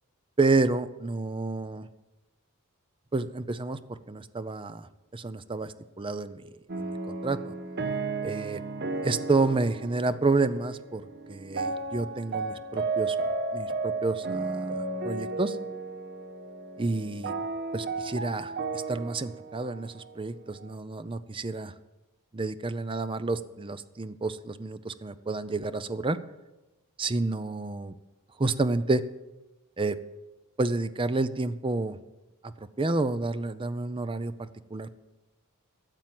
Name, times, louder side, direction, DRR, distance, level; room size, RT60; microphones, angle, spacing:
voice 1, 0.4-1.9 3.1-4.9 5.1-6.4 6.8-7.4 8.2-8.6 9.0-11.0 11.3-13.2 13.5-15.6 16.8-17.3 17.7-21.7 22.3-26.2 27.0-27.9 28.4-29.0 29.8-30.0 30.6-32.0 32.8-35.0, right 3 dB, 25° right, 13 dB, 0.5 m, -29 dB
sound 1, 6.7-20.7, right 3 dB, 45° right, 0.9 m, -34 dB
13.5 x 7.4 x 7.7 m, 1.1 s
head